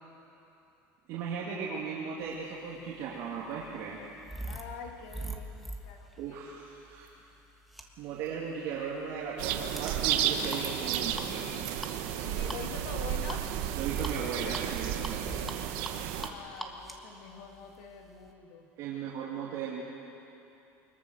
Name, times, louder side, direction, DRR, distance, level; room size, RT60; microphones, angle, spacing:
voice 1, 1.1-4.0 6.2-7.1 8.0-11.7 13.8-15.5 18.8-19.8, right 6 dB, 55° right, -5 dB, 2.9 m, -37 dB
sound 1, 2.6-18.3, right 1 dB, ahead, 1.5 m, -44 dB
voice 2, 4.5-6.4 12.2-13.5 16.1-18.7, left 6 dB, 80° left, 2 dB, 2.4 m, -45 dB
sound 2, 9.4-16.3, right 10 dB, 70° right, 1.5 m, -32 dB
24.5 x 22.0 x 6.6 m, 2.9 s
cardioid pair, 160°, 6 cm